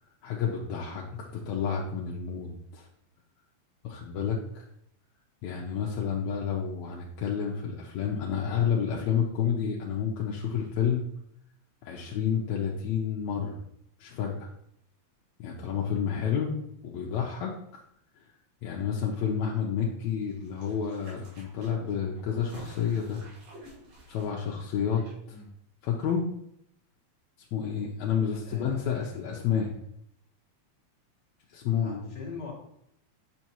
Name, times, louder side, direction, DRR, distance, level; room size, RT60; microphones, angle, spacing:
voice 1, 0.2-1.0 1.3-2.9 3.8-4.4 5.4-11.0 11.8-13.6 14.0-14.5 15.4-16.6 16.8-17.5 18.2-18.3 18.6-23.2 24.1-25.4 25.8-26.3 27.5-29.7 31.5-32.1, left 7 dB, 75° left, -2 dB, 2.0 m, -30 dB
voice 2, 1.1-1.5 6.0-6.3 25.3-25.5 28.4-29.2 31.8-32.5, left 5 dB, 40° left, -4 dB, 2.2 m, -43 dB
sound 1, 20.3-25.1 25.4-25.5, right 1 dB, 80° right, 3.4 m, -51 dB
8.4 x 5.4 x 2.9 m, 0.73 s
omnidirectional pair, 3.3 m